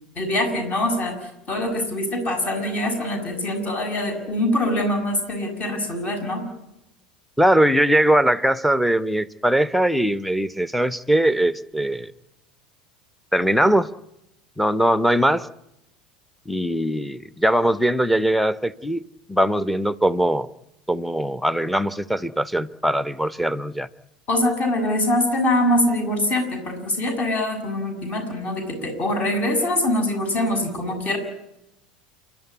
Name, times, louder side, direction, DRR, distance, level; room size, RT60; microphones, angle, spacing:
voice 1, 0.2-6.5 24.3-31.2, left 1 dB, 35° left, 7.3 m, -23 dB
voice 2, 7.4-12.1 13.3-13.9 14.6-15.5 16.5-19.0 19.3-20.5 20.9-23.9, right 1 dB, ahead, 1.0 m, -21 dB
29.0 x 12.5 x 9.8 m
figure-of-eight pair, 75°, 4 cm